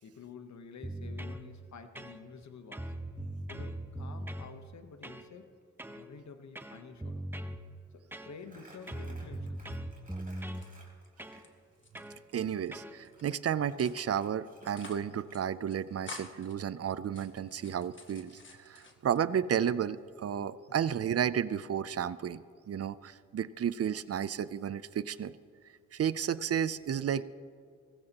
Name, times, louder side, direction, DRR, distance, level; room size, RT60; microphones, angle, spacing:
voice 1, 0.0-2.9 3.5-5.5 5.9-7.3 7.9-9.9, left 5 dB, 70° left, 8 dB, 1.0 m, -50 dB
sound 1, 0.8-1.4 2.0-2.4 2.7-4.5 5.0-5.3 5.8-6.1 6.6-7.6 8.1-8.6 8.9-10.7 11.2-11.4 12.0-12.2 12.7-13.0, right 1 dB, 5° right, 0.8 m, -40 dB
Crumpling crinkling, 8.4-11.5 13.1-15.4, right 2 dB, 30° right, 3.5 m, -57 dB
sound 2, 10.5-11.5 11.7-12.7 13.0-13.4 13.8-14.3 14.6-15.1 15.3-15.4 15.7-16.5 17.0-19.2 19.6-20.3, left 4 dB, 40° left, 1.4 m, -50 dB
voice 2, 12.3-18.3 18.6-25.3 25.9-27.2, right 8 dB, 55° right, 16 dB, 0.5 m, -32 dB
18.5 x 15.5 x 2.9 m, 2.2 s
cardioid pair, 70°, 29 cm